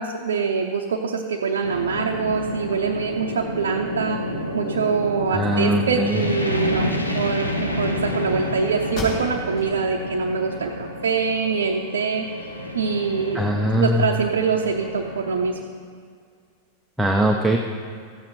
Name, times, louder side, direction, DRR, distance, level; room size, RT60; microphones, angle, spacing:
voice 1, 0.0-4.2 4.5-13.4 13.8-15.6, right 5 dB, 65° right, 1 dB, 0.7 m, -24 dB
Air Raid Request, 1.6-15.5, left 1 dB, 85° left, 1.0 m, -30 dB
voice 2, 5.3-6.3 13.3-14.1 17.0-17.6, equal, 5° right, 1 dB, 0.7 m, -21 dB
sound 1, 8.9-9.7 10.2-10.3 10.8-11.7, left 1 dB, 50° left, 3.5 m, -34 dB
14.0 x 8.6 x 4.5 m, 2.1 s
figure-of-eight pair, 90°, 0 cm